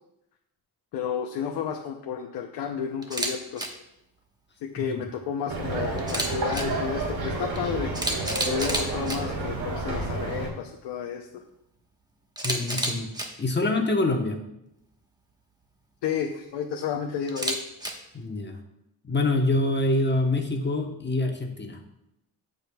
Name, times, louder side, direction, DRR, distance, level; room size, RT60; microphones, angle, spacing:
voice 1, 0.9-3.7 4.6-7.9 8.4-11.3 16.0-17.6, left 7 dB, 90° left, 3 dB, 0.7 m, -31 dB
Camera, 3.0-3.3 3.6-3.7 6.0-6.6 7.6-7.7 7.9-9.2 12.4-13.3 17.3-17.9, right 1 dB, 10° right, 1.2 m, -29 dB
sound 1, 5.5-10.5, right 3 dB, 70° right, 2.2 m, -30 dB
voice 2, 12.4-13.1 13.4-14.4 18.1-18.6 19.0-21.8, left 2 dB, 25° left, 3 dB, 1.1 m, -25 dB
14.5 x 5.2 x 2.3 m, 0.84 s
cardioid pair, 85°, 40 cm